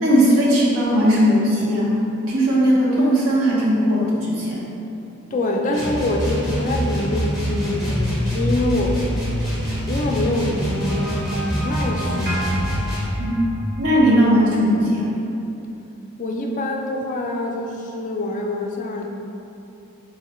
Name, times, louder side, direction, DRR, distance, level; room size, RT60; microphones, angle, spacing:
voice 1, 0.0-1.9 2.2-4.7 13.2-13.3 13.8-15.1, equal, 70° right, -5 dB, 0.9 m, -18 dB
voice 2, 5.3-9.0 9.9-12.5 16.2-19.1, left 1 dB, 35° left, 1 dB, 0.3 m, -25 dB
sound 1, 5.7-13.2, equal, ahead, 0.8 m, -25 dB
sound 2, 10.9-14.2, equal, 40° right, 0.7 m, -33 dB
3.9 x 3.1 x 3.0 m, 2.8 s
head